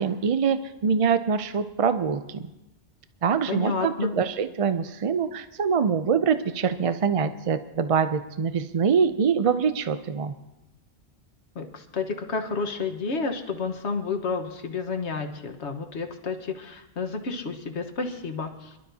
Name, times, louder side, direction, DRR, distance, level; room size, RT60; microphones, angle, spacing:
voice 1, 0.0-2.5 3.2-10.3, right 6 dB, 50° right, 10 dB, 0.4 m, -24 dB
voice 2, 3.5-4.2 11.5-18.7, left 4 dB, 90° left, 6 dB, 1.5 m, -30 dB
26.0 x 12.5 x 2.7 m, 0.97 s
omnidirectional pair, 1.1 m